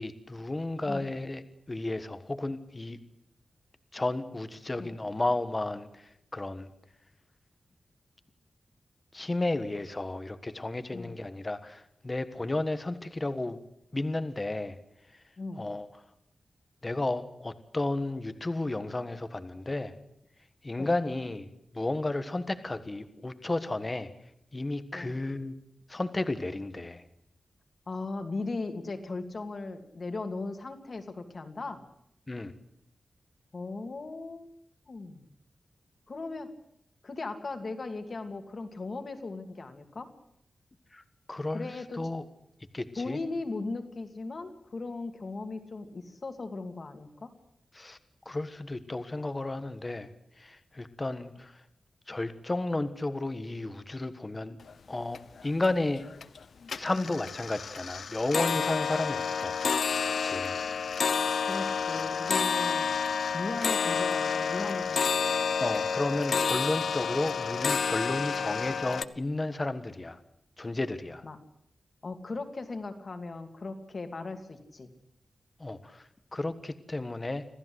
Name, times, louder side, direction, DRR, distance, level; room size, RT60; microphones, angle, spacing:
voice 1, 0.0-3.0 3.9-6.0 6.3-6.7 9.1-13.6 13.9-14.8 15.6-15.9 16.8-19.9 20.6-21.5 21.7-24.1 24.5-25.5 25.9-27.0 32.3-32.5 40.9-41.0 41.3-42.2 42.7-43.2 47.7-48.0 48.2-50.1 50.4-51.5 52.1-54.6 54.9-56.0 56.7-59.6 60.2-60.6 65.6-70.2 70.6-71.2 75.6-77.5, left 2 dB, 20° left, 11 dB, 1.4 m, -33 dB
voice 2, 15.4-15.7 20.8-21.0 24.9-25.2 27.9-31.8 33.5-34.5 34.9-35.3 36.1-36.5 37.0-40.1 41.5-42.1 43.0-47.3 56.9-57.1 61.5-62.9 63.3-65.4 71.2-71.4 72.0-74.9, left 3 dB, 40° left, 7 dB, 2.7 m, -38 dB
sound 1, 54.7-54.8 55.1-55.7 56.1-56.4 56.7-69.0, left 6 dB, 70° left, 0.9 m, -29 dB
26.5 x 16.0 x 8.0 m, 0.77 s
wide cardioid pair, 165°, 0 cm